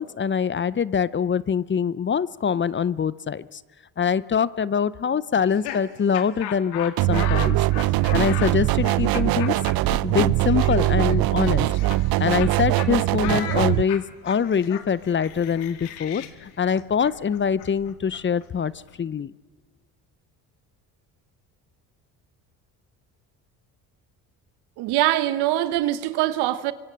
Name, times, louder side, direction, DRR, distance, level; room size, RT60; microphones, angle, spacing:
voice 1, 0.0-3.6 4.0-7.6 8.1-9.6 10.0-11.7 12.2-18.7 19.0-19.3, left 7 dB, 30° left, 0.7 m, -24 dB
Laughter, 5.3-12.5 12.8-12.9 13.2-18.9, left 11 dB, 85° left, 1.9 m, -37 dB
sound 1, 7.0-13.8, right 17 dB, 65° right, 0.7 m, -21 dB
voice 2, 24.8-26.7, right 14 dB, 85° right, 1.3 m, -23 dB
24.5 x 24.5 x 7.7 m
supercardioid pair, 80°, 39 cm